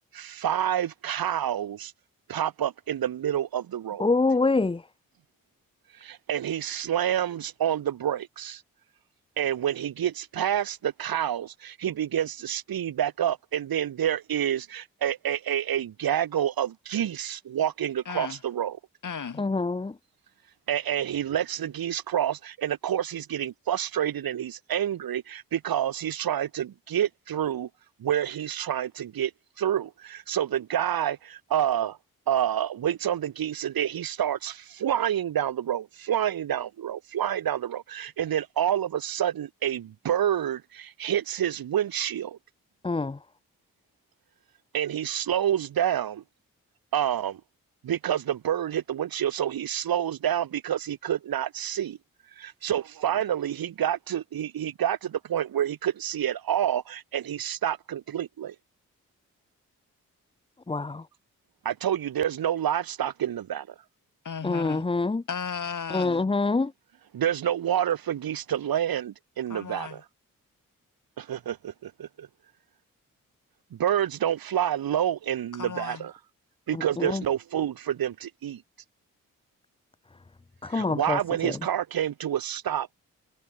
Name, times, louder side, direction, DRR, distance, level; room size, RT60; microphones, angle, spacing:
voice 1, 0.1-1.9 2.3-4.1 5.9-8.6 9.4-18.8 20.7-27.7 28.0-29.3 29.6-32.0 32.3-42.4 44.7-46.2 46.9-47.4 47.8-52.0 52.4-58.5 61.6-63.7 67.1-70.0 71.2-72.3 73.7-76.1 76.7-78.6 80.7-82.9, right 10 dB, 75° right, 3.1 m, -28 dB
voice 2, 4.0-4.8 19.4-19.9 42.8-43.2 60.7-61.0 64.4-65.2 65.9-66.7 76.7-77.2 80.6-81.5, left 3 dB, 15° left, 0.7 m, -26 dB
voice 3, 18.0-18.4 19.0-19.4 64.2-64.9 65.3-66.2 69.5-70.0 75.6-76.1, left 6 dB, 55° left, 4.7 m, -35 dB
supercardioid pair, 40°, 36 cm